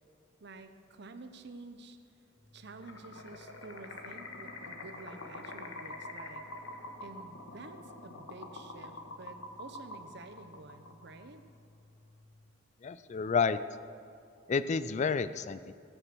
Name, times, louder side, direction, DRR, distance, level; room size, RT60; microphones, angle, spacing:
voice 1, 0.4-2.0 2.5-6.4 7.0-11.4, right 3 dB, 55° right, 9 dB, 0.8 m, -50 dB
Organ, 2.3-12.6, left 2 dB, 20° right, 2.8 m, -60 dB
sound 1, 2.8-11.3, left 2 dB, 80° left, 1.5 m, -46 dB
voice 2, 12.8-13.6 14.5-15.7, left 5 dB, 35° left, 14 dB, 0.3 m, -30 dB
17.5 x 6.9 x 7.1 m, 2.4 s
head